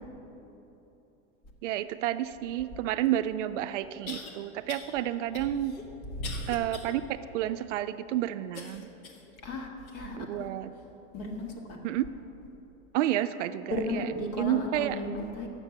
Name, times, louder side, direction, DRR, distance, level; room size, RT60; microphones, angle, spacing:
voice 1, 1.6-5.7 6.5-7.0 7.3-8.9 10.1-10.7 11.8-12.0 12.9-14.1 14.4-15.0, right 13 dB, 60° right, 11 dB, 0.5 m, -30 dB
sound 1, 3.1-3.2 4.1-4.3 4.7-4.9 5.3-6.9 7.4-7.5 8.5-9.3 9.9-10.0 10.7-10.8, left 5 dB, 80° left, 1.3 m, -43 dB
voice 2, 6.1-6.4 9.4-9.7 9.9-10.5 11.1-11.5 13.7-15.5, left 1 dB, 45° left, 1 dB, 1.7 m, -34 dB
8.0 x 6.7 x 7.2 m, 3.0 s
hypercardioid pair, 125°, 42 cm